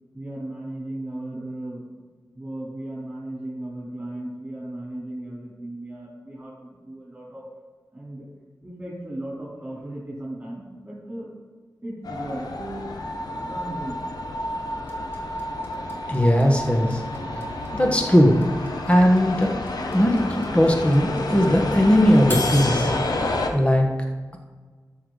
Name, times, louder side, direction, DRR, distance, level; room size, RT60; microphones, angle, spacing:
voice 1, 0.1-1.8 2.3-7.4 7.9-8.3 8.6-11.3 11.8-12.9 13.3-14.0 16.1-16.2, right 1 dB, 20° right, -8 dB, 3.2 m, -36 dB
sound 1, 12.0-23.5, left 2 dB, 80° left, 1.0 m, -30 dB
sound 2, 14.9-23.2, left 1 dB, 35° left, 1.9 m, -33 dB
voice 2, 16.1-17.0 17.7-18.4 18.9-19.5 19.9-20.2 20.5-22.9 23.5-23.8, equal, 20° left, 2 dB, 1.4 m, -18 dB
13.0 x 6.7 x 3.9 m, 1.4 s
wide cardioid pair, 110°, 7 cm